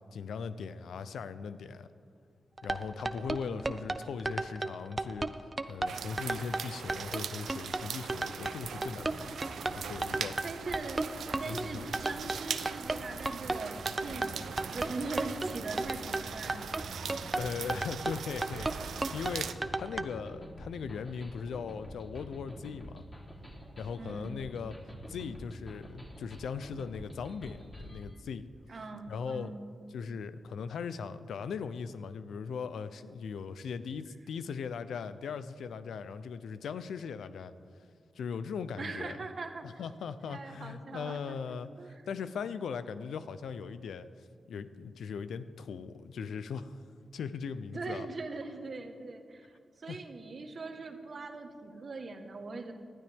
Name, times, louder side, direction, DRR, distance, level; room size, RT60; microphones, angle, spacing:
voice 1, 0.1-1.9 2.6-5.3 5.7-9.3 9.7-10.4 11.5-11.9 17.3-23.0 23.8-24.8 25.1-28.5 29.1-29.5 29.9-37.5 38.2-39.2 39.6-44.1 44.5-46.8 47.1-48.1 49.9-50.0, left 6 dB, 90° left, 13 dB, 0.5 m, -39 dB
sound 1, 2.6-20.0, right 2 dB, 30° right, 0.6 m, -34 dB
voice 2, 3.4-3.8 10.4-11.1 11.4-17.1 24.0-24.4 28.7-29.6 38.8-39.8 40.3-41.4 41.8-42.0 47.7-52.7, right 3 dB, 55° right, 6 dB, 1.4 m, -41 dB
sound 2, 5.9-19.5, right 7 dB, 85° right, 0.5 m, -41 dB
sound 3, 8.3-28.0, equal, 30° left, 3.5 m, -48 dB
19.0 x 12.5 x 3.5 m, 2.2 s
cardioid pair, 65°, 0 cm